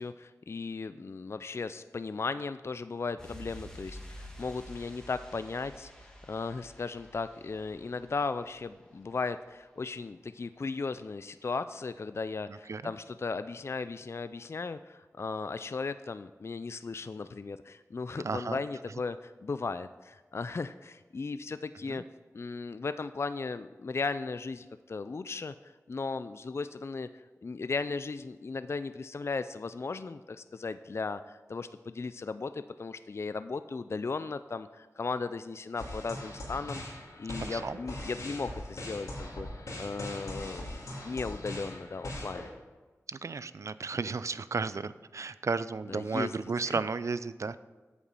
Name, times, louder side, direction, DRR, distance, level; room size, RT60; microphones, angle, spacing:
voice 1, 0.0-22.0 22.3-25.5 25.9-27.1 27.4-36.8 37.2-42.5 45.9-46.3 46.6-46.8, left 4 dB, 50° left, 12 dB, 0.3 m, -36 dB
sound 1, 3.2-9.7 9.9-10.1, equal, 10° left, 2.0 m, -50 dB
voice 2, 12.5-12.9 18.2-18.6 21.9-22.0 37.4-37.8 43.1-47.6, right 4 dB, 65° right, 15 dB, 0.4 m, -34 dB
sound 2, 35.8-42.5, left 1 dB, 90° left, 2.6 m, -41 dB
8.6 x 7.2 x 5.4 m, 1.3 s
wide cardioid pair, 50°, 6 cm